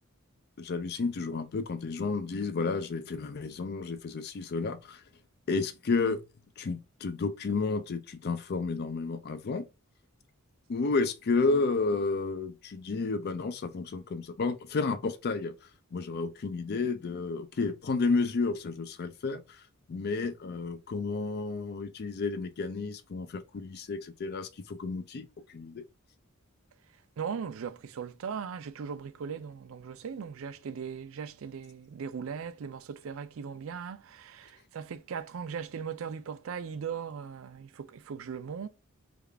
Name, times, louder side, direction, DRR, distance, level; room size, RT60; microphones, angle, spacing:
voice 1, 0.6-5.0 5.5-6.2 6.6-9.7 10.7-15.6 15.9-19.6 19.9-25.8, left 4 dB, 50° left, 0.4 m, -31 dB
voice 2, 27.2-38.7, right 6 dB, 70° right, 0.4 m, -38 dB
3.5 x 2.4 x 3.3 m
head